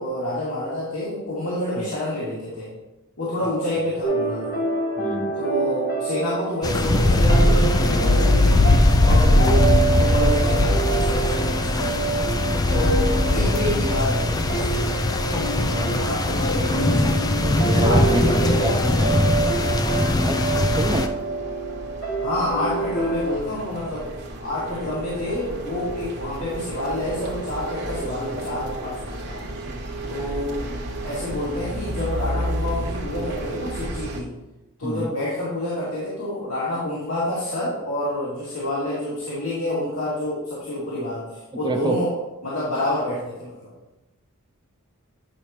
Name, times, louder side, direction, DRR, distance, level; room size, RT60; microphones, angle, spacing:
voice 1, 0.0-2.7 3.2-4.6 5.4-8.7 9.0-9.6 10.0-12.1 12.7-14.9 15.5-17.3 17.8-19.2 20.7-21.0 22.2-24.1 24.4-29.4 30.1-30.7 31.0-34.3 34.8-42.1 42.4-43.7, left 1 dB, 70° left, -9 dB, 2.6 m, -28 dB
sound 1, 4.0-23.4, right 3 dB, 45° left, 1.2 m, -27 dB
voice 2, 5.0-5.3 13.1-13.2 16.9-19.4 20.2-20.4 20.8-21.1 24.9-25.0 29.7-29.8 34.8-35.1 41.6-42.0, right 1 dB, 20° right, 5 dB, 0.6 m, -28 dB
sound 2, 6.6-21.1, left 2 dB, 15° left, 0.3 m, -20 dB
sound 3, 17.5-34.2, right 1 dB, 50° right, 1.2 m, -33 dB
10.0 x 5.4 x 3.1 m, 0.99 s
head